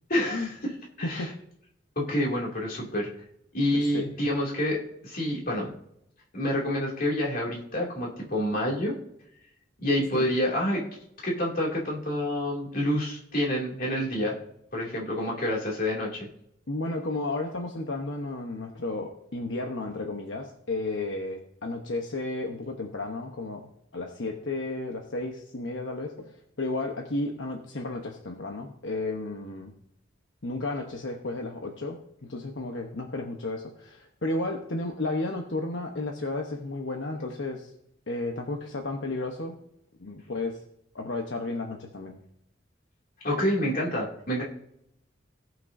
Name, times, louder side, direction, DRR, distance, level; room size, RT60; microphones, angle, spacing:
voice 1, 0.1-0.7 1.0-1.3 2.0-3.1 3.5-5.7 6.3-9.0 9.8-10.8 11.2-14.4 14.7-16.3 43.2-44.4, left 1 dB, 50° left, -2 dB, 2.6 m, -28 dB
voice 2, 3.7-4.1 10.1-10.2 16.7-29.7 30.4-37.7 38.1-39.6 40.0-40.6 40.9-42.2, left 2 dB, 75° left, 2 dB, 1.1 m, -33 dB
18.0 x 6.1 x 2.7 m, 0.75 s
head